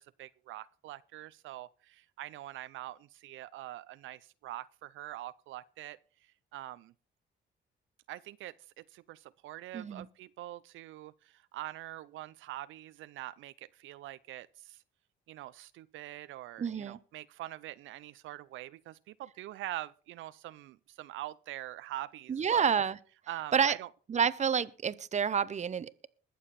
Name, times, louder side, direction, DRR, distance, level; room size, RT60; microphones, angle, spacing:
voice 1, 0.0-6.9 8.1-14.8 15.3-22.7 23.3-23.9, right 15 dB, 80° right, 0.5 m, -44 dB
voice 2, 9.7-10.1 16.6-17.0 22.3-23.0 23.5-23.8 24.1-26.1, right 7 dB, 35° right, 0.7 m, -29 dB
21.5 x 7.1 x 4.1 m
cardioid pair, 90°, 20 cm